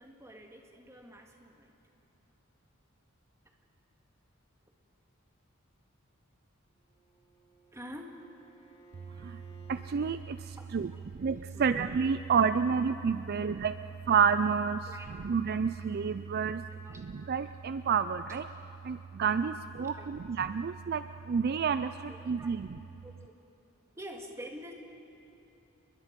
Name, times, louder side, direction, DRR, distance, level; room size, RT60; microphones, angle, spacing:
voice 1, 0.0-1.8 7.7-8.2 10.6-11.0 11.5-11.9 13.3-13.5 14.9-15.2 16.7-17.1 19.9-20.3 22.1-22.5 23.0-23.4 23.9-24.7, equal, 15° right, 2 dB, 2.0 m, -47 dB
Bowed string instrument, 6.7-9.9, right 4 dB, 30° left, 3.7 m, -59 dB
voice 2, 9.7-13.7 14.1-16.6 17.0-18.5 18.8-22.7, right 6 dB, 50° right, 12 dB, 0.4 m, -30 dB
29.0 x 22.0 x 5.3 m, 2.9 s
head